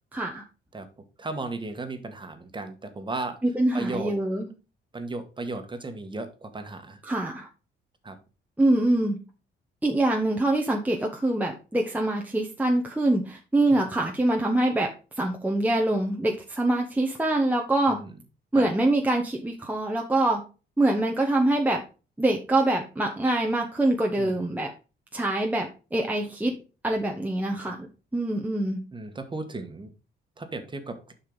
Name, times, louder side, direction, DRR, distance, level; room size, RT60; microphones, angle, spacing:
voice 1, 0.1-0.4 3.5-4.5 7.0-7.5 8.6-9.2 9.8-14.9 15.2-18.0 18.5-20.4 20.8-21.8 22.2-24.7 25.1-26.6 26.8-27.9 28.1-28.8, right 1 dB, 10° right, 1 dB, 1.0 m, -24 dB
voice 2, 1.2-3.4 3.7-4.1 4.9-7.0 8.0-8.2 13.7-13.8 17.9-18.1 18.5-18.7 24.2-24.5 27.6-27.7 28.9-29.9 30.4-31.0, right 2 dB, 25° right, 6 dB, 1.5 m, -35 dB
7.5 x 5.6 x 3.9 m, 0.33 s
cardioid pair, 90°, 20 cm